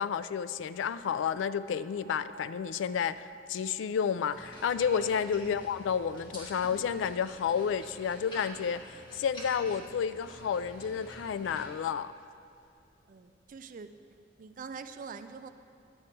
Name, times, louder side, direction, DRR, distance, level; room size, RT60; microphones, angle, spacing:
voice 1, 0.0-12.1, left 7 dB, 80° left, 14 dB, 0.3 m, -31 dB
sound 1, 2.0-13.5, right 3 dB, 15° right, 2.2 m, -59 dB
sound 2, 4.3-11.7, equal, 25° left, 2.0 m, -48 dB
voice 2, 13.1-13.9 14.4-15.5, right 5 dB, 45° right, 10 dB, 0.4 m, -44 dB
10.5 x 7.5 x 4.5 m, 2.3 s
head